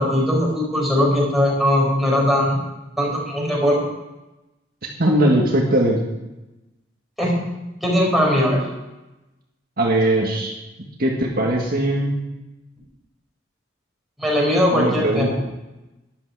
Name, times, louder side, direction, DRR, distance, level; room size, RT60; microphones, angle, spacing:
voice 1, 0.0-2.6 3.0-3.8 7.2-7.3 7.8-8.6 14.2-15.4, equal, ahead, -4 dB, 4.9 m, -19 dB
voice 2, 5.0-6.0 9.8-10.5 11.0-12.1 14.7-15.3, right 1 dB, 55° right, -1 dB, 1.8 m, -19 dB
13.0 x 11.5 x 4.9 m, 1.0 s
head